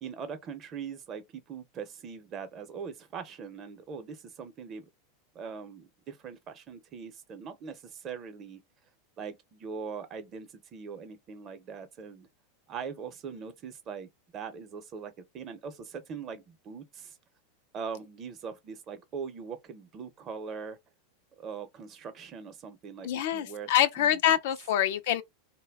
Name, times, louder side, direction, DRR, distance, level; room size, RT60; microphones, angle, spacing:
voice 1, 0.0-4.9 5.3-8.6 9.2-12.3 12.7-17.2 17.7-20.8 21.4-23.7 24.0-24.1, right 6 dB, 35° right, 0.7 m, -41 dB
voice 2, 23.0-25.2, left 11 dB, 70° left, 0.4 m, -26 dB
2.2 x 2.1 x 3.4 m
hypercardioid pair, 110°, 0 cm